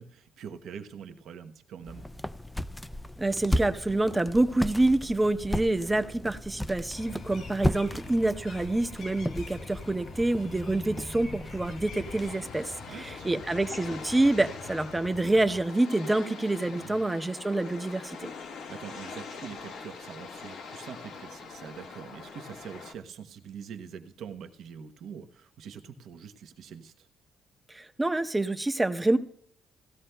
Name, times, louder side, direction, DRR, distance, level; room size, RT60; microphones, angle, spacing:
voice 1, 0.0-2.0 12.9-13.4 16.6-17.2 18.7-27.1, right 7 dB, 75° right, 7 dB, 0.9 m, -44 dB
sound 1, 1.8-12.4, left 1 dB, 5° left, 0.4 m, -35 dB
voice 2, 3.2-18.2 27.7-29.2, right 2 dB, 15° right, 8 dB, 0.7 m, -27 dB
sound 2, 6.9-15.6, left 3 dB, 70° left, 2.3 m, -45 dB
sound 3, 12.0-22.9, left 5 dB, 85° left, 1.3 m, -43 dB
17.0 x 13.0 x 2.2 m, 0.63 s
cardioid pair, 90°, 0 cm